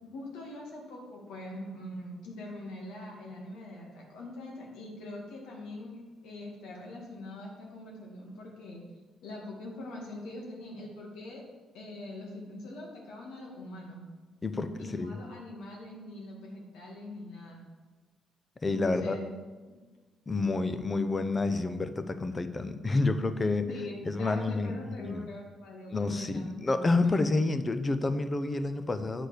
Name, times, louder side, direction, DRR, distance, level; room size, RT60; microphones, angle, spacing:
voice 1, 0.0-8.8 9.2-11.4 11.7-14.0 14.8-17.6 18.7-19.3 19.7-19.8 23.5-27.4, left 1 dB, 85° left, -1 dB, 1.9 m, -43 dB
voice 2, 14.4-15.2 18.6-19.2 20.3-23.7 24.0-25.3 25.9-29.3, left 3 dB, 25° left, 10 dB, 0.6 m, -29 dB
8.0 x 4.1 x 6.6 m, 1.3 s
cardioid pair, 90°, 0 cm